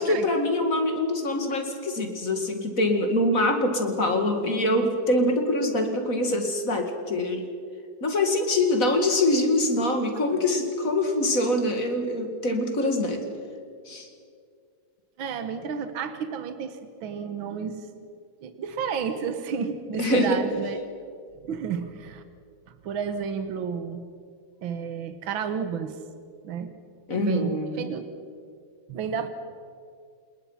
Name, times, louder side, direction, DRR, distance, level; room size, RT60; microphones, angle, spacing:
voice 1, 0.0-7.5 8.0-13.3 13.9-14.1 20.0-20.4 27.1-27.9, left 1 dB, 40° left, 5 dB, 2.6 m, -24 dB
voice 2, 15.2-17.9 18.4-20.8 21.5-22.2 22.7-24.1 24.6-26.0 26.4-26.7 27.1-28.0 28.9-29.3, right 6 dB, 75° right, 9 dB, 2.0 m, -31 dB
28.5 x 20.0 x 5.8 m, 2.2 s
omnidirectional pair, 2.2 m